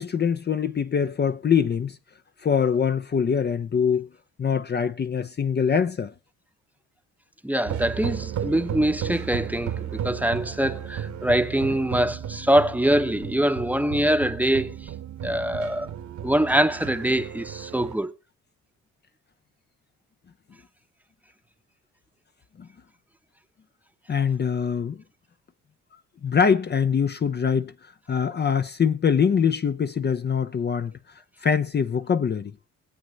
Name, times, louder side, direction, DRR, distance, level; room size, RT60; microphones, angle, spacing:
voice 1, 0.0-2.0 2.4-4.1 4.4-6.1 22.6-22.7 24.1-25.0 26.2-27.7 28.1-30.9 31.4-32.5, left 7 dB, 35° left, 0.7 m, -23 dB
voice 2, 7.4-14.7 15.2-15.9 16.2-18.1, right 1 dB, 5° right, 0.9 m, -23 dB
sound 1, 7.6-18.0, right 9 dB, 70° right, 1.5 m, -34 dB
21.0 x 8.1 x 4.0 m
cardioid pair, 90°, 30 cm